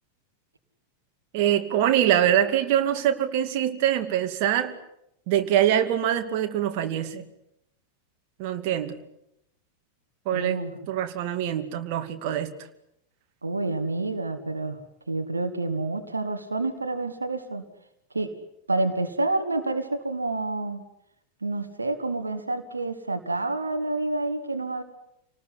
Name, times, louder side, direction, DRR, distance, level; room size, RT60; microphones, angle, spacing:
voice 1, 1.3-4.7 5.3-7.2 8.4-9.0 10.3-10.6 10.9-12.5, right 10 dB, 45° right, 6 dB, 2.5 m, -24 dB
voice 2, 10.3-10.8 13.4-14.8 15.1-17.6 18.1-18.4 18.7-20.8 21.4-24.8, right 2 dB, 80° right, 7 dB, 2.0 m, -28 dB
29.0 x 19.5 x 9.9 m, 0.80 s
figure-of-eight pair, 90°, 0 cm